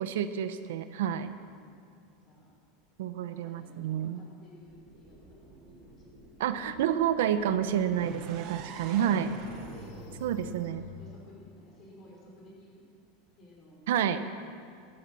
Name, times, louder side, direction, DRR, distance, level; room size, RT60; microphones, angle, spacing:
voice 1, 0.0-1.3 3.0-4.2 6.4-9.4 10.2-10.9 13.9-14.2, right 9 dB, 80° right, 11 dB, 0.8 m, -29 dB
voice 2, 1.4-1.8 2.2-2.5 3.1-6.6 7.6-7.9 8.7-9.0 9.5-10.2 11.0-12.8 13.3-13.8, left 1 dB, 30° left, -3 dB, 5.2 m, -54 dB
sound 1, 4.7-10.6, right 1 dB, 15° right, 4.2 m, -54 dB
sound 2, 7.9-11.8, right 6 dB, 45° right, 1.3 m, -46 dB
sound 3, 8.3-11.4, left 10 dB, 65° left, 1.1 m, -51 dB
14.5 x 13.0 x 6.9 m, 2.3 s
supercardioid pair, 165°, 0 cm